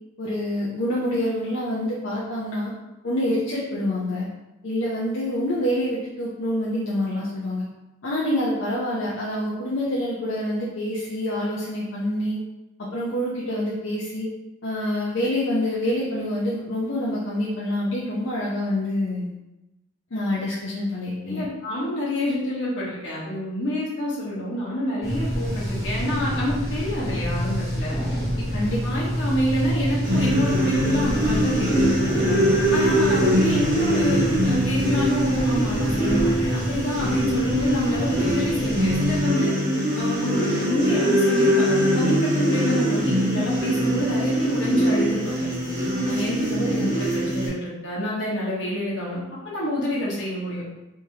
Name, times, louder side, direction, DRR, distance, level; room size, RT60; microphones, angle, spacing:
voice 1, 0.2-2.7 3.0-4.3 4.6-7.7 8.0-12.4 12.8-14.3 14.6-19.3 20.1-21.4 28.5-28.8 46.6-46.9, left 1 dB, 85° left, -6 dB, 0.6 m, -26 dB
voice 2, 21.3-28.0 28.4-28.5 28.8-32.2 32.7-39.5 39.9-45.5 46.0-49.2 49.5-50.6, equal, 65° left, -6 dB, 1.3 m, -27 dB
sound 1, 25.0-39.2, equal, 20° left, 1.1 m, -28 dB
sound 2, 30.0-47.5, equal, 40° right, 0.9 m, -23 dB
3.4 x 3.0 x 2.8 m, 0.98 s
head